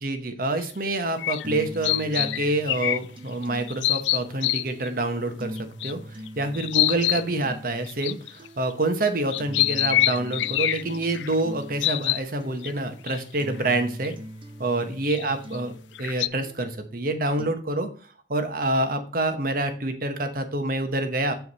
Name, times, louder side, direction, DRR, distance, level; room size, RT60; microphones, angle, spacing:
voice 1, 0.0-14.2 14.6-15.7 16.0-17.9 18.3-21.3, right 2 dB, 50° right, 8 dB, 1.1 m, -27 dB
sound 1, 0.6-0.7 1.2-3.0 3.4-4.9 5.6-5.9 6.3-6.4 6.5-7.2 7.9-8.7 9.3-11.3 11.8-12.2 12.6-12.7 13.1-13.2 13.6-13.7 14.0-14.1 15.0-15.6 15.9-16.3, left 15 dB, 90° left, 0.3 m, -25 dB
sound 2, 1.4-17.4, equal, 30° right, 0.9 m, -42 dB
8.0 x 4.7 x 4.1 m, 0.41 s
head